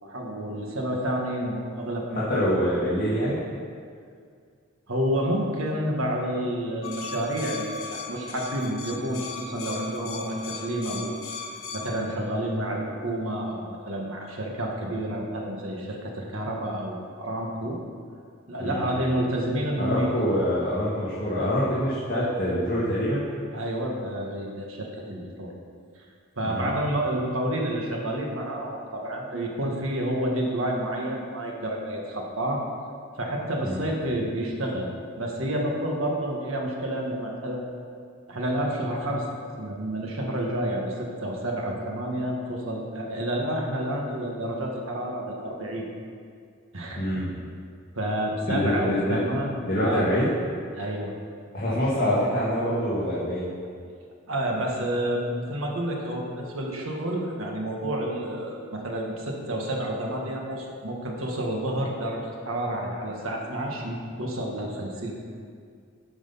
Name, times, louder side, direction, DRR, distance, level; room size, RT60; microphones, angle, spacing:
voice 1, 0.0-2.5 4.9-11.1 11.7-17.8 18.5-20.1 23.5-25.5 26.4-32.7 33.2-37.7 38.3-39.3 39.6-45.9 46.7-47.2 47.9-50.1 50.7-51.1 54.3-65.1, right 1 dB, 80° right, 0 dB, 1.6 m, -29 dB
voice 2, 2.2-3.4 18.6-19.0 19.8-23.2 26.5-26.7 33.6-33.9 46.9-47.3 48.5-49.2 49.6-50.3 51.5-53.5, equal, 45° left, -9 dB, 1.9 m, -25 dB
sound 1, 6.8-11.9, left 4 dB, 85° left, 1.4 m, -37 dB
9.8 x 6.1 x 5.6 m, 2.2 s
head